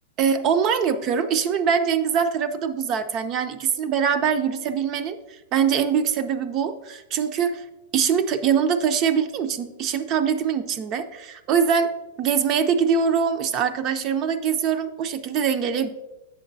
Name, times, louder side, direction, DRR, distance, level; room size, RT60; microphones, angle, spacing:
voice 1, 0.2-7.6 7.9-15.9, right 7 dB, 35° right, 9 dB, 0.5 m, -23 dB
7.5 x 6.5 x 2.6 m, 1.0 s
hypercardioid pair, 130°, 0 cm